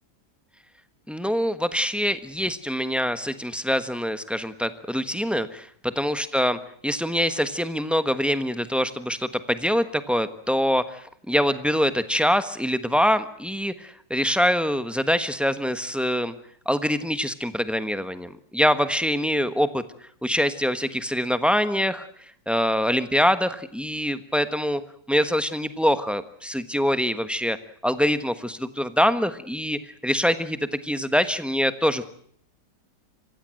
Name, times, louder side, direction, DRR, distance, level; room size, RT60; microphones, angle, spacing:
voice 1, 1.1-6.6 6.8-16.3 16.6-19.8 20.2-22.1 22.5-24.8 25.1-27.6 27.8-32.1, equal, ahead, 11 dB, 1.0 m, -24 dB
26.5 x 16.0 x 9.0 m, 0.64 s
omnidirectional pair, 1.8 m